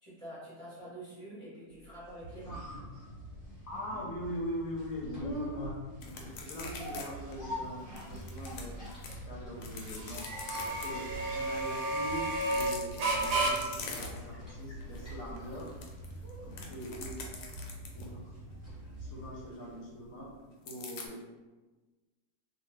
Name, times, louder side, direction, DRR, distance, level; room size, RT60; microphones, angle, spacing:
voice 1, 0.0-2.7 16.4-16.7, right 1 dB, 25° right, -10 dB, 0.7 m, -47 dB
sound 1, 1.9-19.9 20.2-20.3, left 1 dB, 20° left, 0.9 m, -46 dB
sound 2, 2.2-19.4, right 2 dB, 85° right, 1.2 m, -37 dB
voice 2, 3.7-5.7 6.1-8.8 9.3-10.3 10.7-11.1 11.3-15.7 16.7-17.2 17.9-18.2 19.0-20.3 20.7-21.1, equal, 65° left, -4 dB, 0.9 m, -42 dB
sound 3, 6.0-7.1 7.3-7.4 8.0-9.1 9.6-10.9 12.3-14.4 14.8-15.0 15.4-18.1 20.7-21.1, left 4 dB, 85° left, 1.2 m, -44 dB
2.6 x 2.4 x 3.2 m, 1.2 s
omnidirectional pair, 1.7 m